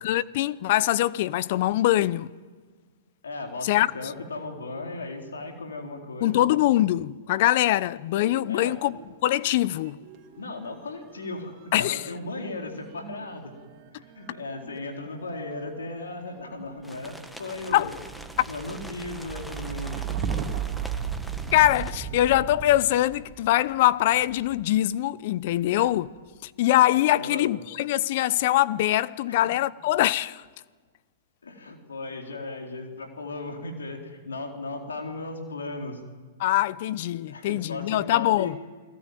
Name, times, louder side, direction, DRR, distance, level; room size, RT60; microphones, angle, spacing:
voice 1, 0.0-2.3 3.6-3.9 6.2-9.0 9.2-10.0 11.7-12.0 17.7-17.9 18.4-18.5 21.5-26.1 26.4-30.4 36.4-38.6, left 14 dB, 55° left, 0.8 m, -23 dB
voice 2, 3.2-6.5 8.5-8.8 10.4-13.5 14.0-18.0 18.5-20.2 25.7-25.9 27.2-27.5 29.3-29.4 31.4-36.0 37.3-38.5, left 2 dB, 80° left, 4.0 m, -36 dB
sound 1, 8.1-9.5 9.7-24.8 25.5-26.1, right 8 dB, 35° right, 2.9 m, -37 dB
sound 2, 16.8-21.9, equal, ahead, 1.6 m, -44 dB
29.5 x 20.0 x 9.4 m
hypercardioid pair, 110°, 0 cm